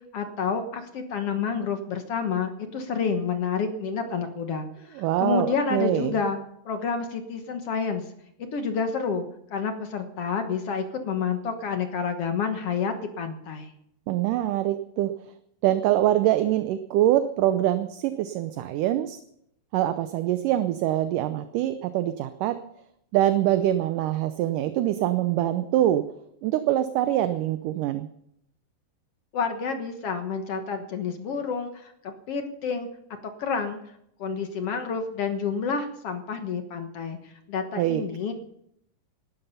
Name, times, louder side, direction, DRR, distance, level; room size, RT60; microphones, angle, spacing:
voice 1, 0.1-6.4 6.7-8.0 8.5-13.7 29.3-32.9 33.4-33.8 34.2-38.3, left 5 dB, 55° left, 7 dB, 1.8 m, -29 dB
voice 2, 5.0-6.2 14.1-15.1 15.6-19.2 19.7-22.6 23.1-26.0 26.4-28.1 37.8-38.0, right 13 dB, 75° right, 10 dB, 2.2 m, -24 dB
18.0 x 12.5 x 5.6 m, 0.75 s
omnidirectional pair, 4.0 m